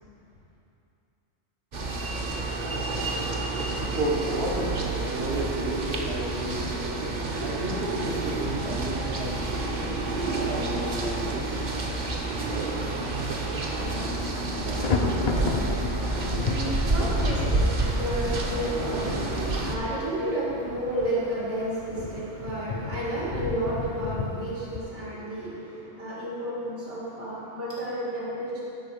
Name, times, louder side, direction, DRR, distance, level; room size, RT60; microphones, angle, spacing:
sound 1, 1.7-19.8, right 2 dB, 45° right, 0.8 m, -29 dB
voice 1, 3.7-11.8 12.1-12.8 14.0-14.1, right 2 dB, 65° right, -4 dB, 1.1 m, -33 dB
Thunder, 13.3-13.7 14.0-24.8, left 4 dB, 50° left, 0.5 m, -33 dB
voice 2, 15.2-28.6, right 1 dB, 85° right, -9 dB, 2.9 m, -32 dB
11.5 x 4.9 x 5.2 m, 2.7 s
omnidirectional pair, 1.2 m